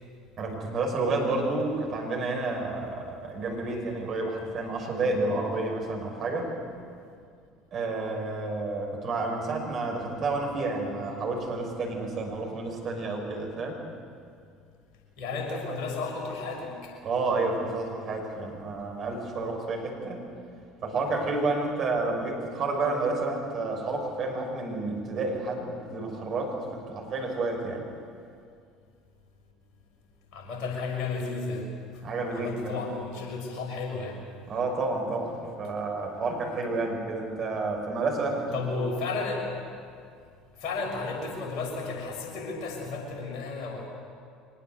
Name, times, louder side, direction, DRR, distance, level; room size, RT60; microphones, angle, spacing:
voice 1, 0.4-6.5 7.7-13.8 17.0-20.2 20.8-27.8 32.0-32.8 34.5-38.8, right 3 dB, 40° right, 1 dB, 6.2 m, -30 dB
voice 2, 15.2-16.9 30.3-31.7 32.3-34.2 38.5-39.5 40.6-43.9, left 3 dB, 50° left, 1 dB, 6.4 m, -33 dB
24.0 x 20.5 x 8.0 m, 2.3 s
figure-of-eight pair, 60°, 0 cm